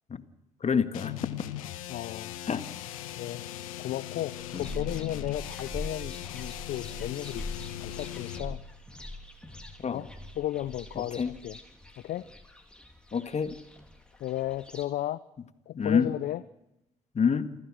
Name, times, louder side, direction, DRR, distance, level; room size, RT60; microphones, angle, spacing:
voice 1, 0.6-1.2 2.5-2.6 4.5-4.7 9.8-10.0 11.0-11.3 13.1-13.6 15.8-16.1 17.1-17.5, left 6 dB, 40° left, 10 dB, 1.9 m, -27 dB
sound 1, 0.9-8.5, left 12 dB, 85° left, 1.2 m, -39 dB
voice 2, 1.9-2.4 3.1-3.4 3.8-7.4 7.8-8.6 9.9-10.1 10.4-11.6 12.0-12.3 14.2-15.2 15.7-16.4, left 13 dB, 60° left, 15 dB, 0.7 m, -34 dB
sound 2, 4.4-14.8, left 1 dB, 5° left, 3.9 m, -43 dB
28.0 x 14.5 x 6.4 m, 0.90 s
hypercardioid pair, 50°, 17 cm